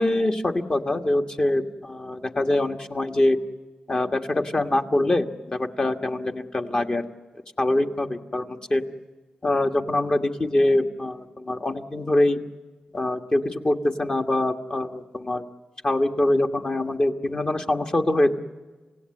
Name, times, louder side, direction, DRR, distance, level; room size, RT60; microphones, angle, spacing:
voice 1, 0.0-3.4 3.9-7.0 7.6-8.8 9.4-12.4 12.9-15.4 15.8-18.3, left 1 dB, 35° left, 4 dB, 1.5 m, -24 dB
27.5 x 17.0 x 9.6 m, 1.3 s
wide cardioid pair, 85°, 3 cm